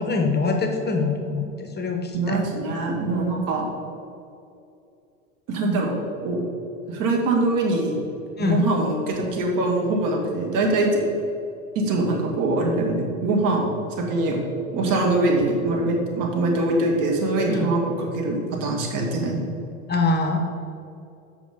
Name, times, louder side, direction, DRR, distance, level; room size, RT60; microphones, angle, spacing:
voice 1, 0.0-2.4 8.4-8.7 17.5-17.7 19.9-20.4, left 3 dB, 25° left, 4 dB, 1.1 m, -24 dB
voice 2, 2.1-3.7 5.5-6.4 6.9-8.0 8.4-11.0 11.8-14.4 14.7-19.4, right 2 dB, 50° right, 0 dB, 2.1 m, -23 dB
8.3 x 5.9 x 5.2 m, 2.7 s
hypercardioid pair, 85°, 41 cm